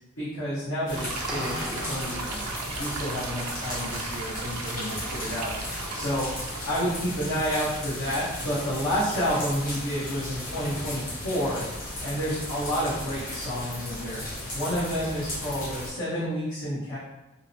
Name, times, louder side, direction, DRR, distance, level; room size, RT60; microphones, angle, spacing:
voice 1, 0.2-2.5 2.8-5.5 5.9-6.3 6.6-11.6 12.0-14.2 14.5-17.0, equal, 75° left, -11 dB, 0.9 m, -30 dB
sound 1, 0.9-15.9, left 1 dB, 40° left, 0.7 m, -35 dB
sound 2, 0.9-6.7, right 4 dB, 85° right, 0.3 m, -37 dB
sound 3, 1.3-3.2, equal, 5° right, 0.3 m, -38 dB
2.6 x 2.0 x 2.6 m, 1.1 s
head